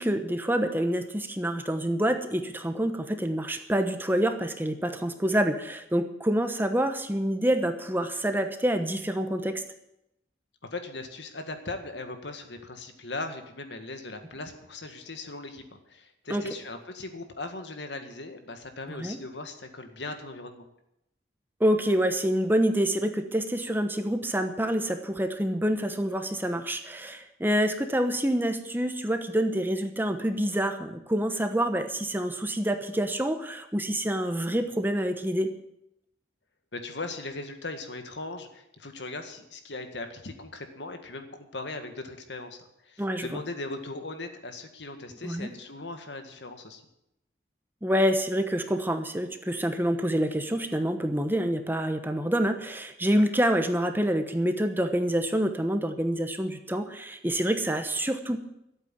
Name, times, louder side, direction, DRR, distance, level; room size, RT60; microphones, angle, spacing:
voice 1, 0.0-9.6 16.3-16.4 18.9-19.2 21.6-35.5 43.0-43.3 45.2-45.5 47.8-58.4, equal, 10° right, 7 dB, 1.0 m, -27 dB
voice 2, 10.7-20.7 36.7-42.6 42.8-46.8, left 2 dB, 80° left, 7 dB, 1.9 m, -39 dB
13.5 x 8.3 x 9.0 m, 0.83 s
head